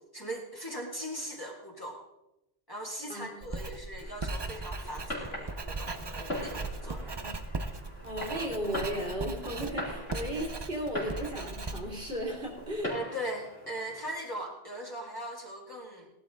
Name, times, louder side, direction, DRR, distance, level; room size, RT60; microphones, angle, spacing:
voice 1, 0.1-2.0 2.7-7.1 12.9-16.1, equal, 20° left, -2 dB, 2.3 m, -39 dB
Writing, 3.4-12.8, right 3 dB, 30° right, 0.6 m, -38 dB
Fireworks, 4.0-14.1, left 1 dB, 65° left, 3.4 m, -42 dB
voice 2, 6.8-7.4 8.0-12.9, equal, 60° right, -1 dB, 2.8 m, -35 dB
17.0 x 11.5 x 3.7 m, 0.91 s
omnidirectional pair, 1.1 m